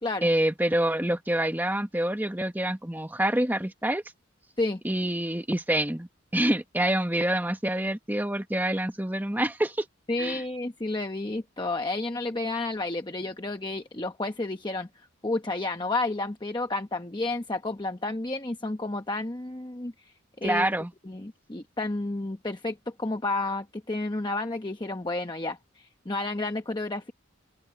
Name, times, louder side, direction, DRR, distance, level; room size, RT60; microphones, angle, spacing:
voice 1, 0.2-4.0 4.8-9.9 10.2-10.4 20.4-20.9, right 1 dB, 10° right, 1.2 m, -27 dB
voice 2, 10.1-14.9 15.2-20.1 20.4-20.7 21.0-27.1, left 2 dB, 20° left, 0.9 m, -31 dB
open air
head